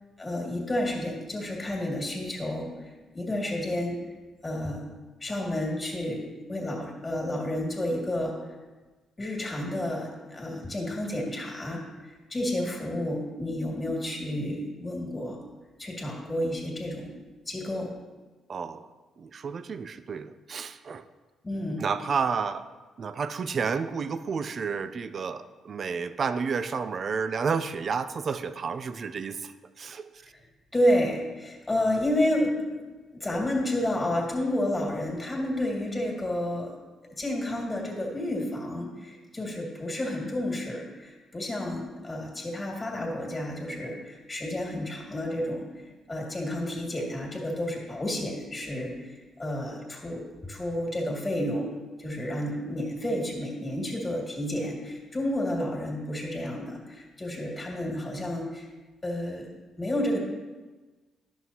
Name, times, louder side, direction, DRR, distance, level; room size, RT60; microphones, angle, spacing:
voice 1, 0.2-2.7 3.1-4.0 4.4-4.8 5.2-6.2 6.5-8.4 9.2-11.8 12.3-15.4 15.8-17.1 17.5-17.9 21.4-21.8 30.7-32.8 33.1-36.7 37.2-45.7 46.1-49.1 49.4-51.7 52.0-58.7 59.0-59.5 59.8-60.2, left 1 dB, 20° left, -1 dB, 2.0 m, -30 dB
voice 2, 18.5-18.9 19.2-21.0 21.8-22.7 23.0-30.1, right 5 dB, 50° right, 12 dB, 0.4 m, -31 dB
11.0 x 6.2 x 2.8 m, 1.3 s
cardioid pair, 90°, 0 cm